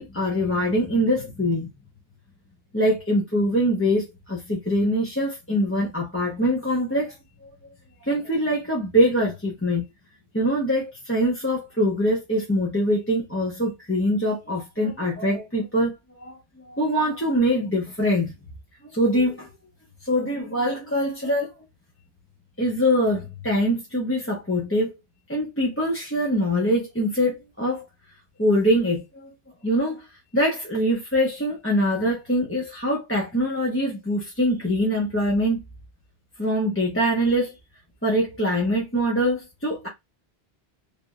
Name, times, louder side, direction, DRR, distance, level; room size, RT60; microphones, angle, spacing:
voice 1, 0.0-1.7 2.7-7.2 7.4-7.5 8.0-9.8 10.3-15.9 16.2-18.3 18.9-19.5 20.0-21.5 22.6-24.9 25.3-27.8 28.4-29.3 29.6-30.1 30.3-35.6 36.4-37.5 38.0-39.9, equal, 15° left, 1.0 m, -23 dB
3.5 x 2.9 x 2.4 m
omnidirectional pair, 1.1 m